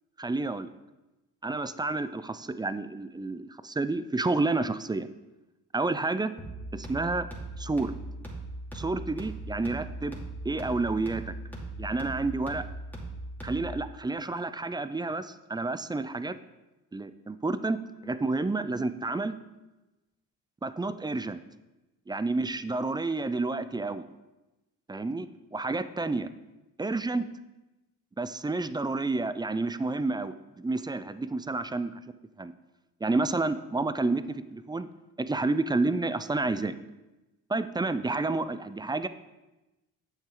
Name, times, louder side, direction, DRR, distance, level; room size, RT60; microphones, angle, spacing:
voice 1, 0.2-0.7 1.4-5.1 5.7-6.3 6.7-7.3 7.6-7.9 8.7-10.2 10.4-11.3 11.8-12.6 13.4-16.4 16.9-17.8 18.0-19.3 20.6-21.4 22.1-24.0 24.9-26.3 26.8-27.2 28.2-32.0 32.4-32.5 33.0-34.9 35.2-36.7 37.5-39.1, right 3 dB, 10° right, 13 dB, 0.4 m, -30 dB
sound 1, 6.4-13.9, right 2 dB, 5° left, 2.6 m, -39 dB
9.0 x 7.2 x 3.8 m, 1.1 s
supercardioid pair, 70°, 40 cm